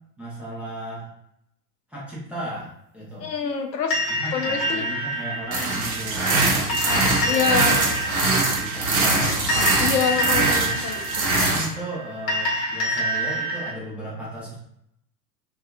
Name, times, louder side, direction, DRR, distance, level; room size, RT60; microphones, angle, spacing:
voice 1, 0.2-1.1 1.9-3.3 4.1-9.7 10.3-10.7 11.3-14.6, right 1 dB, 5° right, -9 dB, 0.5 m, -35 dB
voice 2, 3.2-4.0 4.3-4.8 7.3-7.9 9.8-10.9 11.4-11.5, left 6 dB, 85° left, 3 dB, 0.6 m, -25 dB
sound 1, 3.9-13.7, equal, 30° left, 1.0 m, -27 dB
sound 2, 5.5-11.7, right 2 dB, 60° right, 0.8 m, -23 dB
2.7 x 2.3 x 2.3 m, 0.76 s
figure-of-eight pair, 85°, 49 cm